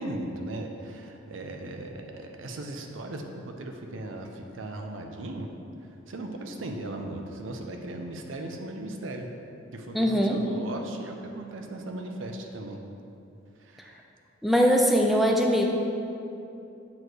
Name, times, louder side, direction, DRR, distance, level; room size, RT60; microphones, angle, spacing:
voice 1, 0.0-5.5 6.1-9.3 9.7-12.8 13.6-14.0, right 1 dB, 85° right, 3 dB, 0.7 m, -37 dB
voice 2, 9.9-10.4 14.4-15.7, equal, ahead, 0 dB, 0.4 m, -21 dB
7.2 x 3.2 x 6.1 m, 2.7 s
head